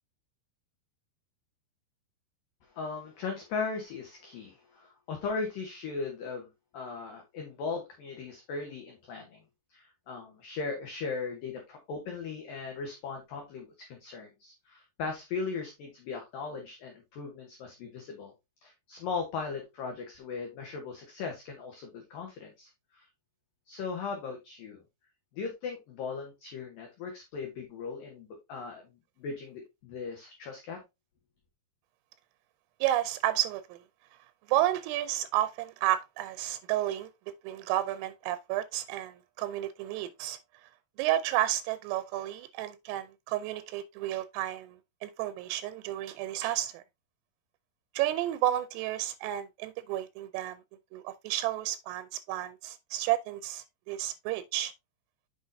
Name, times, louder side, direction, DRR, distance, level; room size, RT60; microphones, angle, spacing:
voice 1, 2.7-6.5 6.7-9.4 9.7-18.3 18.6-23.1 23.7-24.8 25.3-28.9 29.2-30.8, left 4 dB, 85° left, 1.9 m, -38 dB
voice 2, 32.8-33.8 34.5-37.1 37.4-40.4 41.0-46.8 48.0-50.6 50.9-54.7, right 13 dB, 85° right, 3.2 m, -31 dB
8.0 x 6.1 x 2.6 m
omnidirectional pair, 5.8 m